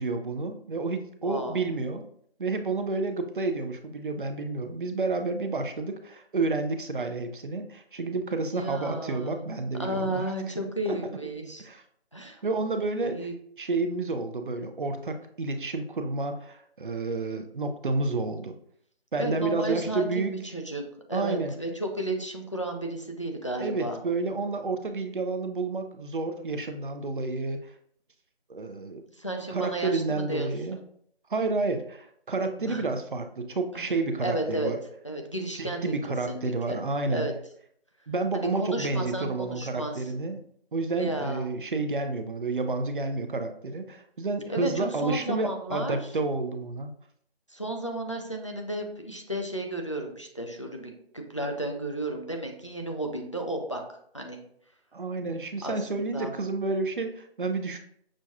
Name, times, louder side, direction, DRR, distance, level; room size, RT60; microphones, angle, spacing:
voice 1, 0.0-2.1 2.4-10.3 11.6-11.8 12.4-13.3 13.6-18.5 19.1-20.4 21.1-21.5 23.6-27.7 28.5-29.0 29.5-30.8 31.3-34.8 35.6-37.3 38.1-40.4 40.7-46.9 54.9-57.8, right 3 dB, 55° right, 7 dB, 0.5 m, -30 dB
voice 2, 1.2-1.6 8.5-9.4 9.8-11.7 12.1-12.4 13.1-13.3 19.2-24.0 29.1-30.8 32.6-32.8 33.7-33.9 34.2-34.7 35.0-35.9 36.3-36.8 37.1-37.3 38.3-40.1 41.0-41.4 44.5-46.0 47.5-53.8 54.1-54.4 55.6-56.3, right 1 dB, 30° left, 3 dB, 0.4 m, -33 dB
6.2 x 2.2 x 2.6 m, 0.65 s
figure-of-eight pair, 160°, 31 cm